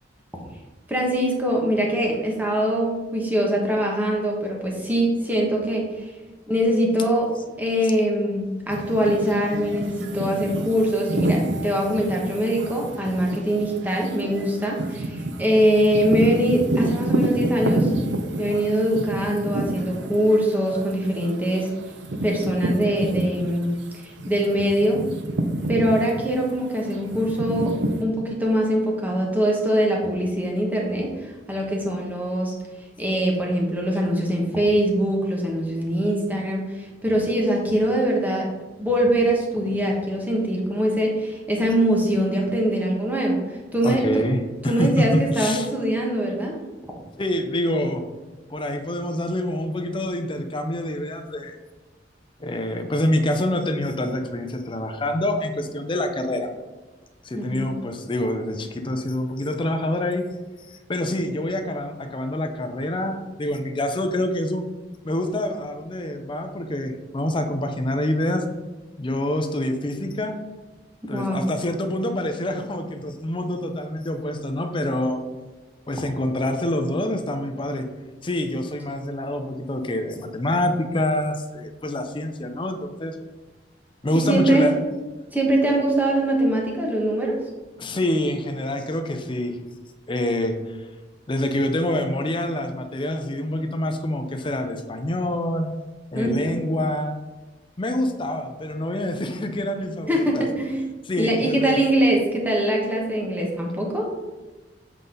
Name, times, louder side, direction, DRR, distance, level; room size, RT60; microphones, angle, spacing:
voice 1, 0.9-6.1 6.5-7.3 7.6-17.9 18.4-21.7 22.2-23.8 24.3-25.0 25.7-32.5 33.0-38.5 38.8-44.2 44.7-46.6 57.3-57.7 71.1-71.5 84.3-84.7 85.3-87.4 87.8-87.9 96.1-96.4 100.1-100.8 101.2-104.1, right 1 dB, 10° right, -2 dB, 1.2 m, -23 dB
sound 1, 8.7-23.8 24.2-28.0, right 1 dB, 75° right, 0.6 m, -28 dB
voice 2, 43.8-45.7 47.2-48.0 48.5-51.6 52.4-56.5 57.2-60.3 60.7-64.7 65.0-68.4 69.0-70.4 71.1-75.2 75.9-77.9 78.2-83.2 84.0-84.7 87.8-89.6 90.1-90.8 91.3-95.7 96.1-97.1 97.8-100.5 101.0-101.8, left 1 dB, 30° left, 6 dB, 0.6 m, -26 dB
7.5 x 4.0 x 3.8 m, 1.2 s
head